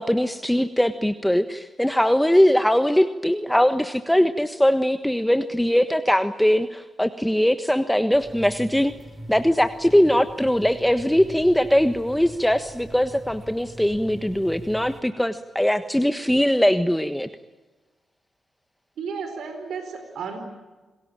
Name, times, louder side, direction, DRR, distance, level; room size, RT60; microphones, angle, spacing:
voice 1, 0.0-8.9 9.3-17.3, equal, 5° left, 9 dB, 1.4 m, -21 dB
sound 1, 8.1-15.0, right 1 dB, 15° right, 5.9 m, -42 dB
voice 2, 19.0-20.4, right 5 dB, 70° right, 7 dB, 4.4 m, -33 dB
28.5 x 20.0 x 8.9 m, 1.2 s
hypercardioid pair, 40°, 0 cm